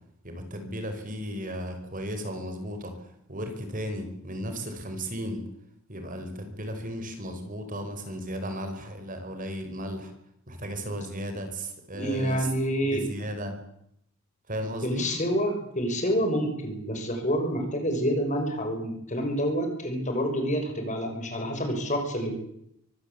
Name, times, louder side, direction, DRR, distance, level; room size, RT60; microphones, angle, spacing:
voice 1, 0.2-2.9 3.3-5.4 5.9-10.1 10.5-13.5 14.5-15.0, equal, 40° right, 6 dB, 5.0 m, -35 dB
voice 2, 11.9-13.0 14.8-22.3, equal, 35° left, 4 dB, 6.3 m, -28 dB
24.5 x 18.0 x 8.4 m, 0.75 s
head